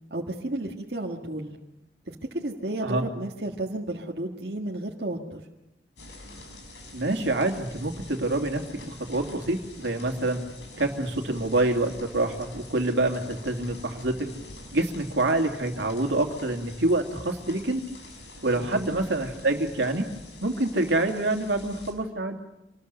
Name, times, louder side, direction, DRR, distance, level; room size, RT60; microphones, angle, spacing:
voice 1, 0.1-1.6 2.1-5.4 18.5-19.1, right 1 dB, 65° right, -1 dB, 1.8 m, -33 dB
sound 1, 6.0-21.9, left 2 dB, 80° left, 5.9 m, -45 dB
voice 2, 6.9-10.4 10.8-14.3 14.7-17.8 18.4-20.1 20.4-22.4, right 2 dB, 90° right, 3 dB, 2.7 m, -26 dB
26.0 x 19.5 x 6.8 m, 0.91 s
head